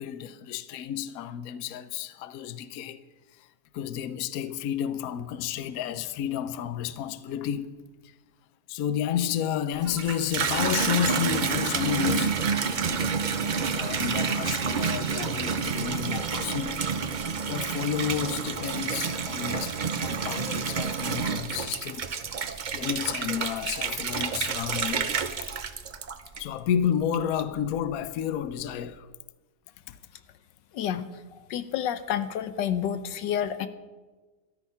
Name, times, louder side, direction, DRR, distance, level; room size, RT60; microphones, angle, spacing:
voice 1, 0.0-3.0 3.7-7.8 8.7-12.4 13.7-16.9 17.5-22.1 22.7-25.1 26.4-29.1 29.9-30.0, left 9 dB, 65° left, 1.0 m, -31 dB
Water tap faucet / Bathtub (filling or washing), 9.7-26.7 27.1-27.7, right 5 dB, 65° right, 0.4 m, -29 dB
voice 2, 30.7-31.1 31.5-33.7, left 9 dB, 85° left, 1.4 m, -29 dB
13.5 x 13.0 x 5.7 m
omnidirectional pair, 1.9 m